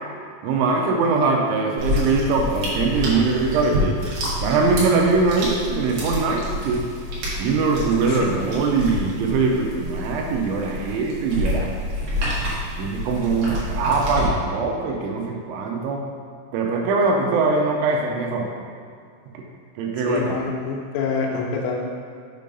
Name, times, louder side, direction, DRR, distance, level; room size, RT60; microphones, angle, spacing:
voice 1, 0.4-4.0 4.4-6.9 7.4-11.7 12.8-16.1 16.5-18.5 19.8-20.4, right 4 dB, 85° right, 0 dB, 2.9 m, -22 dB
sound 1, 1.8-14.3, left 1 dB, 60° right, 2.6 m, -28 dB
voice 2, 20.0-21.9, left 4 dB, 85° left, -1 dB, 3.4 m, -26 dB
7.4 x 3.5 x 5.3 m, 2.3 s
omnidirectional pair, 5.6 m